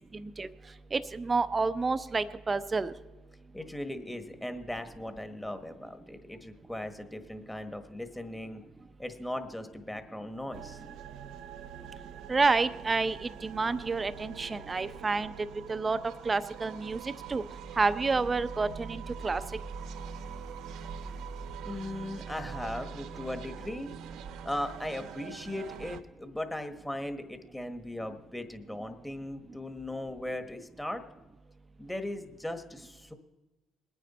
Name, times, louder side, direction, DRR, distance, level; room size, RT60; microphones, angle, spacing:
voice 1, 0.9-2.9 12.3-15.3 15.7-17.4 17.8-19.4, right 4 dB, 30° right, 13 dB, 0.7 m, -29 dB
voice 2, 3.5-8.6 9.0-10.8 21.6-23.9 24.4-31.0 31.8-33.1, left 1 dB, 10° left, 8 dB, 1.4 m, -38 dB
sound 1, 10.5-26.0, right 6 dB, 75° right, 0.6 m, -43 dB
20.5 x 9.4 x 4.3 m, 1.1 s
supercardioid pair, 70°, 0 cm